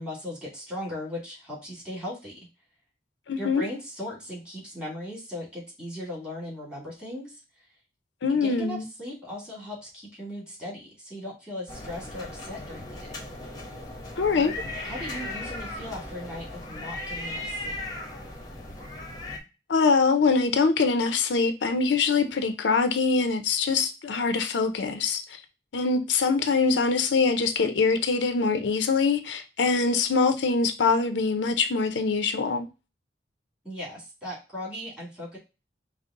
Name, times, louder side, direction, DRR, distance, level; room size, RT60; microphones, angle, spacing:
voice 1, 0.0-2.5 3.4-7.4 8.3-13.3 14.3-14.5 14.8-17.8 33.6-35.4, left 1 dB, 5° right, 2.1 m, -38 dB
voice 2, 3.3-3.7 8.2-8.8 14.2-14.5 19.7-25.2 25.7-32.7, left 4 dB, 90° left, 0.5 m, -23 dB
sound 1, 11.7-19.4, left 1 dB, 20° left, 0.8 m, -37 dB
5.2 x 2.0 x 3.6 m
head